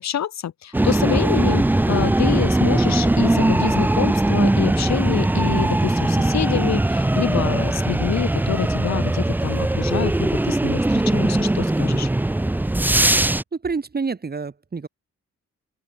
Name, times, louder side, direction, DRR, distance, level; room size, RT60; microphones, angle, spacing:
voice 1, 0.0-12.1, left 10 dB, 65° left, 1.1 m, -26 dB
sound 1, 0.7-13.4, right 1 dB, 5° right, 0.4 m, -20 dB
voice 2, 13.1-14.9, right 4 dB, 30° right, 2.5 m, -29 dB
open air
wide cardioid pair, 115°, 30 cm